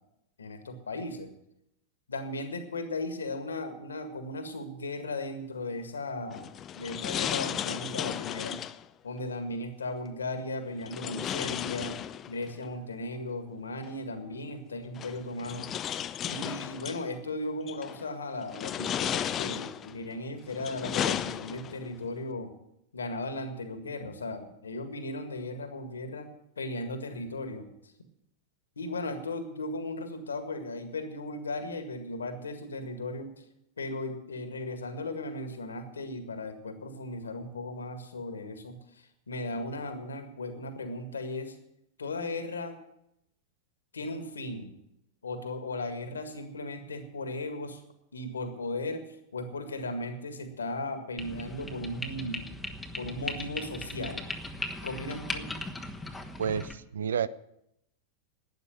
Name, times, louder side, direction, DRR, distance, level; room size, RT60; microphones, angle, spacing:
voice 1, 0.4-1.3 2.1-6.5 6.8-8.6 9.0-12.0 12.3-15.7 16.2-22.5 22.9-26.3 26.6-27.7 28.8-33.3 33.8-41.6 42.0-42.8 43.9-44.7 45.2-47.8 48.1-52.5 53.0-54.3 54.8-55.5, left 2 dB, 70° left, 8 dB, 1.9 m, -36 dB
sound 1, 6.3-8.8 10.9-12.5 13.9-14.0 15.0-17.0 17.7-18.1 18.5-20.0 20.5-21.9, left 10 dB, 30° left, 0.6 m, -34 dB
sound 2, 51.2-56.7, left 2 dB, 5° left, 1.3 m, -38 dB
voice 2, 56.4-57.3, right 7 dB, 65° right, 19 dB, 0.5 m, -30 dB
12.0 x 9.7 x 8.9 m, 0.80 s
figure-of-eight pair, 90°, 0 cm